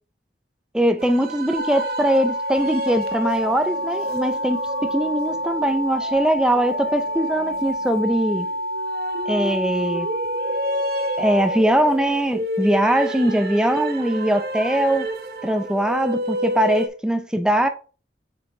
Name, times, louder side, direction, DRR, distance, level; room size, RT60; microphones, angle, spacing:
voice 1, 0.7-8.5 9.3-10.1 11.2-15.1 15.4-17.7, right 1 dB, 5° right, 0.4 m, -21 dB
sound 1, 1.0-16.9, right 1 dB, 60° right, 0.8 m, -31 dB
sound 2, 1.6-11.6, left 2 dB, 85° left, 0.5 m, -28 dB
sound 3, 3.4-8.6, right 2 dB, 15° left, 2.5 m, -48 dB
7.1 x 5.4 x 2.7 m
head